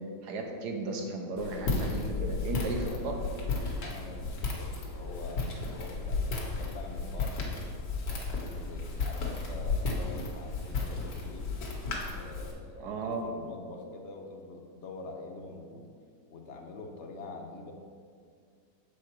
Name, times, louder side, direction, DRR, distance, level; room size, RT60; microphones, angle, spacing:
voice 1, 0.2-3.2 12.8-13.2, right 3 dB, 75° right, 3 dB, 1.4 m, -35 dB
Walk footsteps, 1.4-12.5, left 3 dB, 85° left, 1.7 m, -34 dB
voice 2, 2.5-3.2 3.8-7.7 8.4-11.5 12.1-12.9 13.2-15.8 16.3-17.7, left 3 dB, 55° left, 2 dB, 0.9 m, -45 dB
6.8 x 4.9 x 4.5 m, 2.1 s
omnidirectional pair, 1.8 m